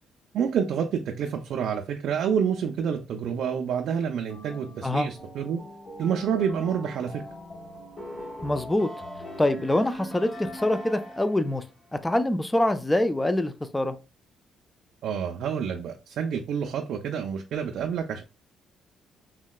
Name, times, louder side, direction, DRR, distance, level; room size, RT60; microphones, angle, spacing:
voice 1, 0.3-5.6 6.0-7.2 15.0-18.2, right 7 dB, 70° right, 0.4 m, -28 dB
sound 1, 4.3-11.6, equal, 40° left, 1.0 m, -41 dB
voice 2, 8.4-8.9 9.4-11.6 11.9-14.0, left 1 dB, 10° left, 0.3 m, -25 dB
3.7 x 2.1 x 2.3 m
cardioid pair, 110°, 0 cm